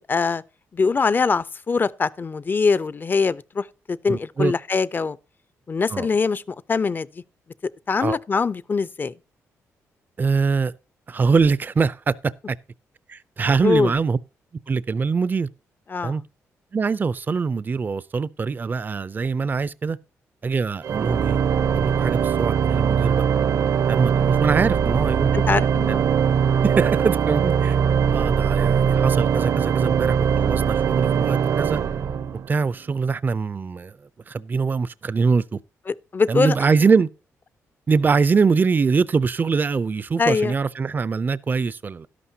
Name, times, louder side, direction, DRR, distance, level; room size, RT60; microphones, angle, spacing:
voice 1, 0.1-0.4 0.7-5.2 5.7-6.4 6.7-7.1 7.9-9.1 13.6-13.9 15.9-16.1 25.3-26.1 36.1-36.5 40.2-40.5, left 4 dB, 35° left, 0.5 m, -22 dB
voice 2, 4.1-4.5 5.9-6.1 8.0-8.2 10.2-10.7 11.1-12.6 13.1-14.2 14.7-15.5 16.0-16.2 16.7-20.0 20.4-21.4 21.7-23.2 23.9-25.3 25.9-26.0 26.6-27.8 28.1-31.8 32.5-35.6 36.3-37.1 37.9-42.1, right 5 dB, 35° right, 0.4 m, -23 dB
Organ, 20.8-32.7, right 7 dB, 65° right, 0.7 m, -21 dB
12.0 x 11.5 x 2.8 m
cardioid pair, 75°, 6 cm